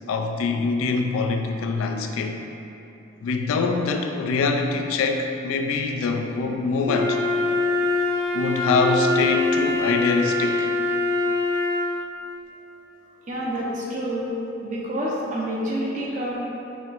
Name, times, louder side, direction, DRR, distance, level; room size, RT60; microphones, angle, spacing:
voice 1, 0.1-2.5 3.2-7.2 8.3-10.7, left 4 dB, 85° left, 4 dB, 0.3 m, -24 dB
Wind instrument woodwind instrument, 6.8-12.0, left 2 dB, 55° right, 1.0 m, -23 dB
voice 2, 13.3-14.3 14.6-16.4, right 1 dB, 35° right, -5 dB, 0.7 m, -28 dB
4.3 x 3.5 x 2.4 m, 2.8 s
head